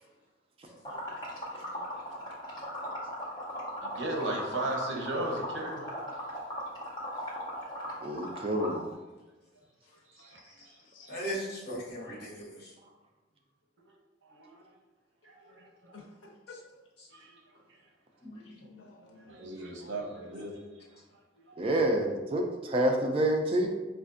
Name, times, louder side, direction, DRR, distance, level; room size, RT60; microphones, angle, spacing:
voice 1, 0.7-1.8 10.9-11.1 15.9-16.8 18.4-19.4 19.8-19.9, left 3 dB, 80° left, 1 dB, 0.6 m, -53 dB
Liquid, 0.8-8.8, equal, 20° left, 0.8 m, -38 dB
voice 2, 3.8-5.8 7.8-8.4 10.1-10.4 10.6-10.8 11.0-11.2 12.0-12.2 14.2-14.6 15.2-16.0 17.1-17.4 19.2-20.6 21.4-21.6, right 1 dB, 70° right, 0 dB, 0.7 m, -37 dB
voice 3, 8.0-8.9 21.6-23.7, right 1 dB, 30° right, 2 dB, 0.3 m, -28 dB
voice 4, 11.1-12.7 17.0-17.1 18.2-18.4, equal, 55° left, -5 dB, 1.1 m, -38 dB
5.0 x 2.4 x 2.5 m, 1.2 s
head